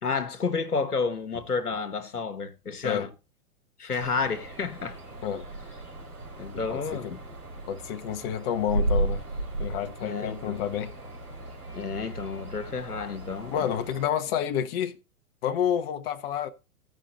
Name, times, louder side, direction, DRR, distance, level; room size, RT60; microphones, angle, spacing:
voice 1, 0.0-3.1 3.8-5.0 6.4-7.2 10.0-10.6 11.7-13.7, left 5 dB, 90° left, 1.2 m, -31 dB
sound 1, 4.0-14.1, right 2 dB, 90° right, 4.4 m, -35 dB
voice 2, 6.7-7.1 7.7-9.2 9.6-10.9 13.5-15.0 15.4-16.5, left 9 dB, 40° left, 0.8 m, -29 dB
15.0 x 5.3 x 3.9 m
figure-of-eight pair, 110°, 44 cm